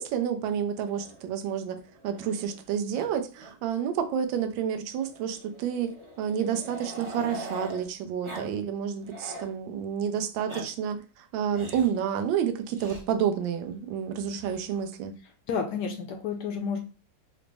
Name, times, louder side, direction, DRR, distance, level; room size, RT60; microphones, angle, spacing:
voice 1, 0.0-15.1, right 8 dB, 85° right, 1.3 m, -30 dB
Growling, 0.8-2.7 2.9-3.1 3.4-3.5 3.9-4.0 5.0-7.8 8.2-8.5 8.8-9.5 10.2-10.6 11.5-12.0 12.7-13.0 14.2-14.8, right 1 dB, 45° right, 0.3 m, -43 dB
voice 2, 15.5-16.8, left 6 dB, 70° left, 1.1 m, -30 dB
4.9 x 2.0 x 3.3 m
omnidirectional pair, 2.1 m